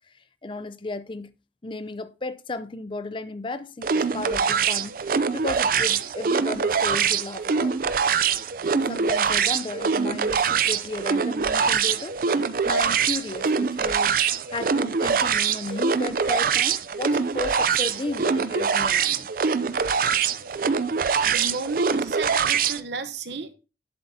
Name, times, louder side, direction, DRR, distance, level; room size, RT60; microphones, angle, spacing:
voice 1, 0.4-1.3 1.6-5.0 5.3-7.8 8.7-12.2 12.6-14.2 14.5-19.3, left 2 dB, 30° left, 0.5 m, -34 dB
sound 1, 3.8-22.8, right 6 dB, 50° right, 0.5 m, -24 dB
voice 2, 21.2-23.5, right 3 dB, 75° right, 0.9 m, -33 dB
11.0 x 7.6 x 2.8 m
head